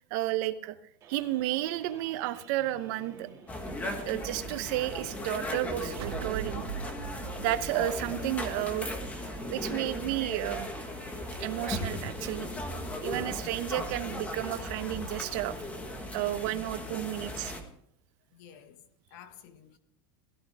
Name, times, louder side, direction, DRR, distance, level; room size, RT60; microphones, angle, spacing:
voice 1, 0.1-0.8 1.1-3.3 4.1-6.6 7.4-9.0 9.5-10.7 11.4-12.5 13.0-15.6 16.1-17.5, right 14 dB, 50° right, 0.8 m, -32 dB
sound 1, 1.0-17.5, right 7 dB, 25° right, 3.2 m, -54 dB
sound 2, 3.5-17.6, left 1 dB, 10° left, 1.4 m, -37 dB
sound 3, 6.0-9.4, right 8 dB, 85° right, 1.4 m, -40 dB
voice 2, 16.2-17.6 18.3-19.8, left 8 dB, 50° left, 1.3 m, -54 dB
16.5 x 14.0 x 3.4 m
supercardioid pair, 175°, 13 cm